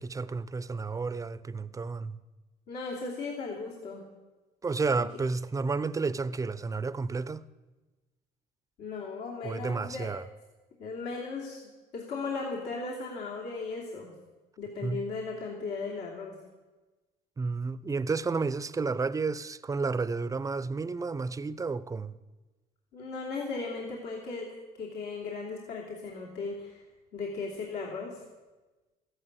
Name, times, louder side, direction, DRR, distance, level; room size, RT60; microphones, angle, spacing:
voice 1, 0.0-2.2 4.6-7.4 9.4-10.2 14.8-15.0 17.4-22.1, right 4 dB, 20° right, 0.6 m, -31 dB
voice 2, 2.7-4.1 8.8-10.1 10.8-11.6 11.9-14.1 14.6-16.4 22.9-24.5 24.8-26.8 27.1-28.2, left 4 dB, 80° left, 3.0 m, -36 dB
14.5 x 11.0 x 8.1 m
cardioid pair, 110°, 17 cm